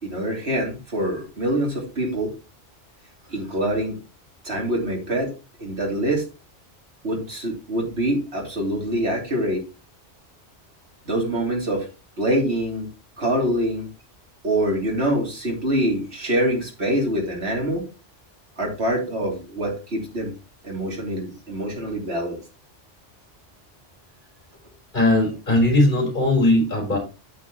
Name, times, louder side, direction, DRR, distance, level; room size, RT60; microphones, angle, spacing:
voice 1, 0.0-2.3 3.3-4.0 4.4-5.3 5.6-6.2 7.0-9.6 11.0-11.9 12.2-12.9 13.2-13.9 14.4-17.9 18.6-20.3 20.6-22.4, right 1 dB, 60° right, 0 dB, 3.2 m, -25 dB
voice 2, 24.9-27.0, left 1 dB, 40° left, 0 dB, 4.5 m, -19 dB
8.9 x 7.6 x 3.0 m, 0.30 s
omnidirectional pair, 1.2 m